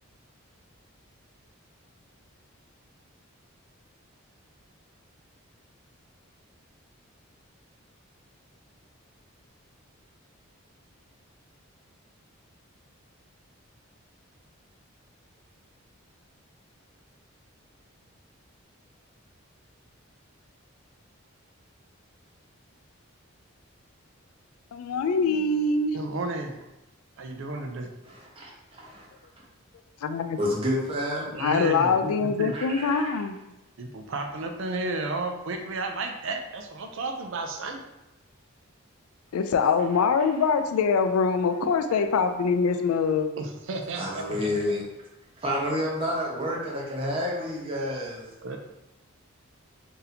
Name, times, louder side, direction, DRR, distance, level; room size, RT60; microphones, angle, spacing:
voice 1, 24.7-25.9 30.0-30.4 31.4-33.4 39.3-43.3, left 5 dB, 80° left, 7 dB, 0.3 m, -24 dB
voice 2, 25.9-26.6 27.2-27.9 31.3-32.6 33.8-37.8 43.4-44.5 48.4-48.6, right 2 dB, 60° right, 4 dB, 0.4 m, -32 dB
voice 3, 28.1-29.1 30.4-31.4 32.5-33.2 44.0-44.8 45.4-48.3, left 1 dB, 25° right, -4 dB, 0.8 m, -29 dB
2.7 x 2.6 x 4.1 m, 0.92 s
head